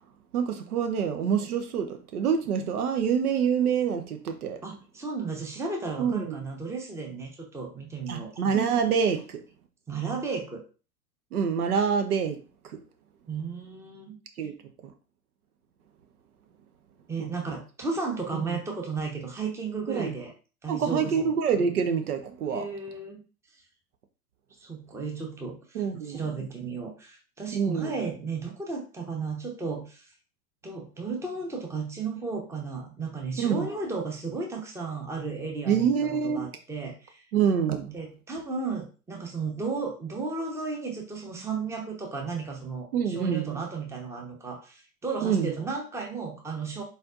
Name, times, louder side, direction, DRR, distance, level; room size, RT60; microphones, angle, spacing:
voice 1, 0.3-4.6 6.0-6.4 8.1-9.4 11.3-12.8 14.4-14.5 17.2-17.3 18.3-18.6 19.9-20.1 20.7-22.6 25.7-26.2 27.5-28.0 33.4-33.7 35.7-36.5 37.3-37.9 42.9-43.6 45.2-45.5, right 7 dB, 65° right, 0.8 m, -26 dB
voice 2, 4.6-8.3 9.9-10.6 13.3-14.2 17.1-20.3 20.6-21.3 22.5-23.2 24.6-30.1 30.6-37.2 37.9-46.8, right 4 dB, 5° right, 0.8 m, -34 dB
4.3 x 4.0 x 2.4 m
figure-of-eight pair, 90°, 48 cm